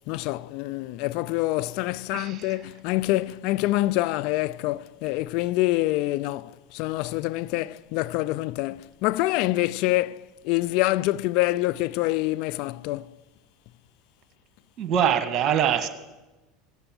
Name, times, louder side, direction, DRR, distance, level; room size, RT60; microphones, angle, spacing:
voice 1, 0.1-13.2, left 18 dB, 65° left, 0.4 m, -26 dB
voice 2, 2.1-2.5 14.8-15.9, right 9 dB, 45° right, 1.7 m, -24 dB
17.0 x 7.8 x 8.9 m
hypercardioid pair, 95°, 0 cm